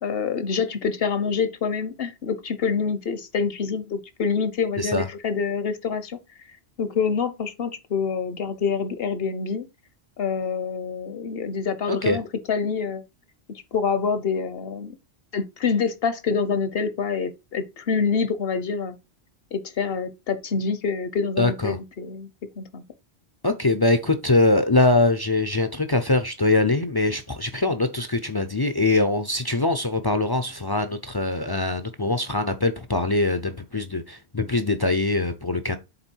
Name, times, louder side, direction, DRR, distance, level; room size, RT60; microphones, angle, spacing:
voice 1, 0.0-6.2 6.8-9.6 10.2-13.0 13.7-15.0 15.3-19.0 19.5-22.3 22.6-22.8, left 5 dB, 65° left, 1.1 m, -26 dB
voice 2, 21.4-21.8 23.4-35.8, left 2 dB, 30° left, 0.5 m, -23 dB
8.0 x 3.6 x 4.5 m
omnidirectional pair, 1.1 m